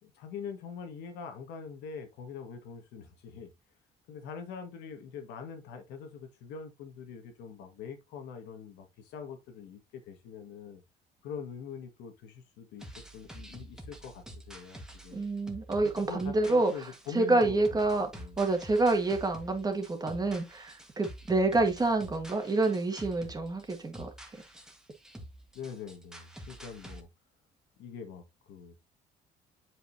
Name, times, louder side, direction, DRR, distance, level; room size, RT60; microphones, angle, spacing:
voice 1, 0.0-3.5 4.1-10.8 11.2-15.3 16.0-18.4 25.5-27.1 27.8-28.7, left 6 dB, 85° left, 1.6 m, -44 dB
sound 1, 12.8-27.0, right 1 dB, 5° right, 1.4 m, -48 dB
voice 2, 15.1-16.9 17.1-24.1, right 2 dB, 20° right, 1.8 m, -28 dB
7.7 x 5.2 x 2.7 m
cardioid pair, 110°, 17 cm